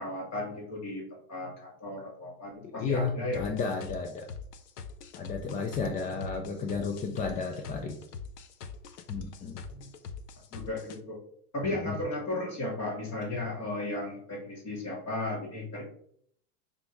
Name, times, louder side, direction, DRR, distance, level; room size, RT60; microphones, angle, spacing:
voice 1, 0.0-3.4 9.8-9.9 10.5-11.2 11.5-15.8, left 2 dB, 35° left, -1 dB, 2.5 m, -35 dB
voice 2, 2.8-4.3 5.2-8.0 9.1-9.6 11.6-11.9, left 4 dB, 20° left, 4 dB, 0.4 m, -33 dB
sound 1, 3.3-11.0, left 6 dB, 70° left, 1.0 m, -43 dB
5.9 x 3.5 x 4.7 m, 0.63 s
hypercardioid pair, 105°, 48 cm